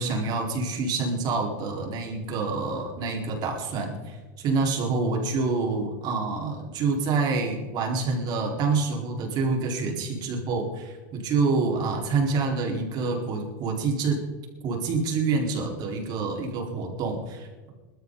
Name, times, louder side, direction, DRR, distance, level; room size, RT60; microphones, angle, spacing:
voice 1, 0.0-14.2 14.6-17.7, right 4 dB, 45° right, 0 dB, 4.4 m, -27 dB
21.0 x 13.0 x 4.0 m, 1.3 s
supercardioid pair, 120°, 10 cm